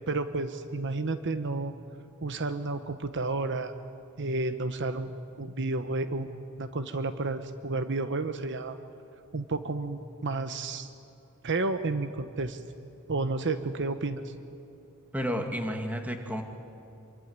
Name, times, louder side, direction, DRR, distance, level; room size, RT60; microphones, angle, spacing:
voice 1, 0.1-1.7 2.2-3.7 4.2-8.8 9.3-10.9 11.4-12.6 13.1-14.3, right 3 dB, 55° right, 10 dB, 1.1 m, -31 dB
voice 2, 15.1-16.4, equal, 5° right, 4 dB, 2.2 m, -31 dB
26.0 x 24.0 x 9.6 m, 2.7 s
head